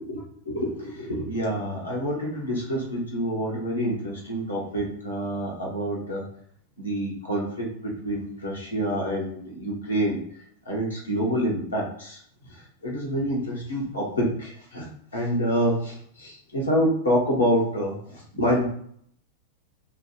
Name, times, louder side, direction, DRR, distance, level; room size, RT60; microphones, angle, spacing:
voice 1, 0.0-6.2 6.8-10.2 10.6-14.9 15.1-18.6, equal, 75° left, -4 dB, 1.2 m, -27 dB
3.5 x 2.2 x 3.2 m, 0.64 s
figure-of-eight pair, 90°, 0 cm